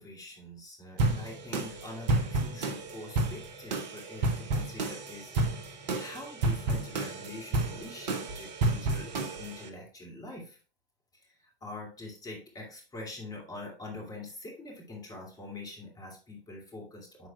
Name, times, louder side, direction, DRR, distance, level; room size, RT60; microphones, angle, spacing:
voice 1, 0.0-5.4 5.6-10.6 11.1-11.4 11.6-17.3, left 2 dB, 10° left, -1 dB, 2.4 m, -44 dB
sound 1, 1.0-9.7, right 2 dB, 45° right, 1.2 m, -31 dB
10.5 x 6.1 x 2.2 m, 0.37 s
figure-of-eight pair, 110°, 30 cm